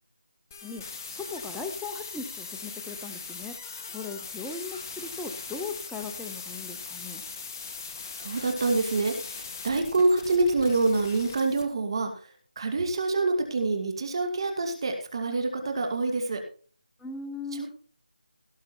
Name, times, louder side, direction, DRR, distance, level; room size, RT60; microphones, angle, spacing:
sound 1, 0.5-11.6, left 5 dB, 20° left, 1.3 m, -40 dB
voice 1, 0.6-3.5 3.9-7.2 17.0-17.7, left 4 dB, ahead, 3 dB, 0.5 m, -38 dB
voice 2, 8.1-12.1 12.6-16.4 17.5-17.7, right 3 dB, 35° right, 4 dB, 2.3 m, -26 dB
17.5 x 6.6 x 4.4 m, 0.39 s
figure-of-eight pair, 170°, 5 cm